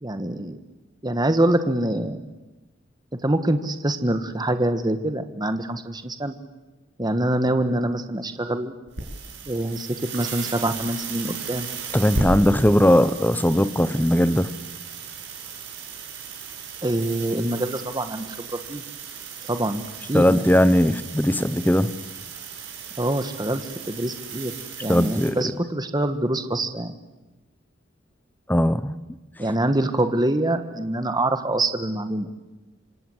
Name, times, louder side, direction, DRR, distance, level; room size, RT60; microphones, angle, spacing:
voice 1, 0.0-0.6 1.0-2.2 3.2-6.4 7.0-8.7 9.5-11.7 16.8-18.8 19.4-20.4 23.0-24.5 24.8-26.9 29.4-32.3, right 1 dB, 20° right, 9 dB, 1.5 m, -25 dB
sound 1, 8.9-25.3, right 4 dB, 60° right, 7.1 m, -35 dB
voice 2, 11.9-14.5 20.1-21.9 24.9-25.5 28.5-29.0, left 1 dB, 10° left, 14 dB, 1.0 m, -19 dB
26.5 x 26.0 x 8.0 m, 1.1 s
head